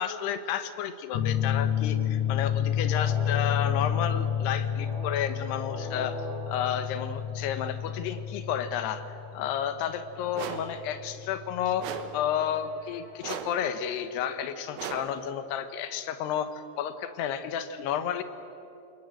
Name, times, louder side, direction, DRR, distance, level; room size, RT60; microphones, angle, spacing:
voice 1, 0.0-6.2 6.5-11.9 12.1-18.2, left 9 dB, 90° left, 11 dB, 3.2 m, -31 dB
sound 1, 1.1-12.3, left 9 dB, 65° left, 2.1 m, -30 dB
sound 2, 2.6-7.9 12.2-13.9, equal, 20° left, 3.8 m, -44 dB
sound 3, 10.3-10.8 11.8-12.3 13.2-13.7 14.8-15.2, right 8 dB, 70° right, 3.0 m, -37 dB
27.5 x 21.0 x 7.8 m, 2.8 s
omnidirectional pair, 4.6 m